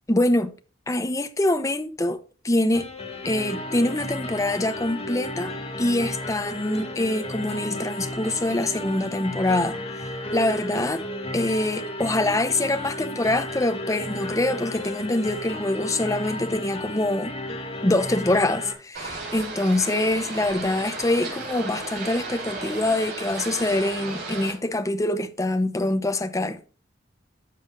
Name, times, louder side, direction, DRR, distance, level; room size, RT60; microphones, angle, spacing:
voice 1, 0.1-0.5 0.9-2.9 3.2-5.5 5.8-11.0 11.3-17.3 17.8-26.6, left 1 dB, 20° left, 0.8 m, -25 dB
sound 1, 2.7-18.7, left 1 dB, 35° left, 2.2 m, -33 dB
sound 2, 18.9-24.5, right 3 dB, 55° right, 4.5 m, -34 dB
12.5 x 7.1 x 2.6 m
head